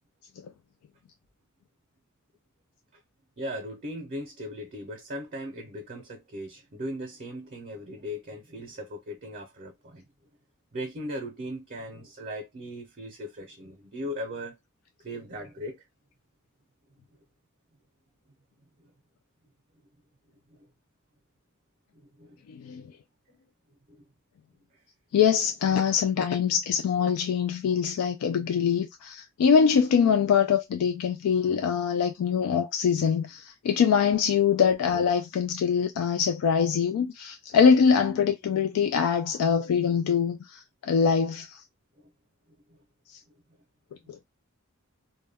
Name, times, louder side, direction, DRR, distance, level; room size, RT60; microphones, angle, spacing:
voice 1, 3.4-10.0 10.7-14.6 15.0-15.8 20.5-20.7 21.9-22.4 23.9-24.0, equal, 45° right, 0.6 m, -38 dB
voice 2, 22.5-22.8 25.1-41.6 44.1-44.2, left 7 dB, 80° left, 0.3 m, -23 dB
2.2 x 2.1 x 3.2 m
head